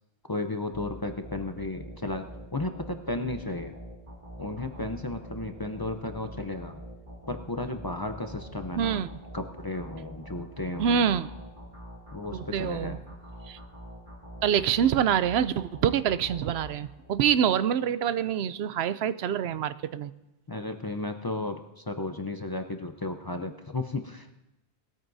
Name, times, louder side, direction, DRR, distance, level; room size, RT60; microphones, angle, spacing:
voice 1, 0.3-2.3 2.5-3.7 4.4-6.8 7.3-9.1 9.3-11.1 12.1-13.0 20.5-24.3, left 2 dB, 25° left, 6 dB, 0.5 m, -34 dB
sound 1, 0.7-17.3, equal, 50° right, 2.4 m, -45 dB
voice 2, 8.7-9.1 10.8-11.3 12.3-13.0 13.5-13.6 14.4-20.1, right 8 dB, 85° right, 14 dB, 0.8 m, -26 dB
20.0 x 13.5 x 2.7 m, 0.94 s
omnidirectional pair, 1.0 m